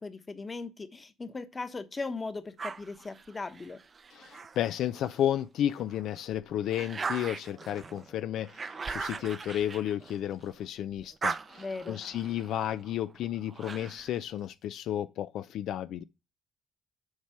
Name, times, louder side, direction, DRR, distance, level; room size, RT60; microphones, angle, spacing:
voice 1, 0.0-3.8 11.6-12.0, left 3 dB, 30° left, 1.1 m, -38 dB
sound 1, 2.6-5.3 5.8-10.6 10.9-14.2, right 5 dB, 40° right, 0.5 m, -40 dB
voice 2, 4.1-16.0, left 11 dB, 80° left, 0.4 m, -32 dB
7.3 x 4.6 x 5.8 m
cardioid pair, 90°, 0 cm